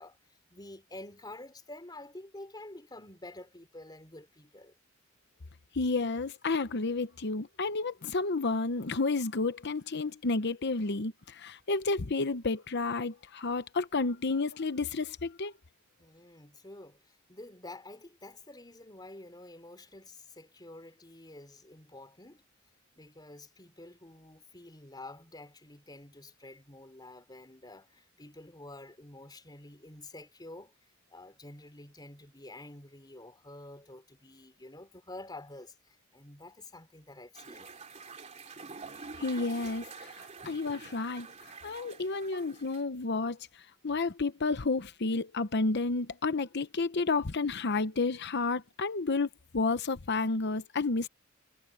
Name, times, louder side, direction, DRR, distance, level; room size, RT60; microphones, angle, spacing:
voice 1, 0.0-4.8 16.0-22.4 23.0-30.7 31.1-37.8, left 2 dB, 20° left, 3.9 m, -49 dB
voice 2, 5.7-15.5 39.2-41.3 41.6-43.4 43.8-51.1, left 3 dB, 55° left, 0.9 m, -31 dB
sound 1, 37.3-42.8, right 4 dB, 35° right, 2.7 m, -47 dB
head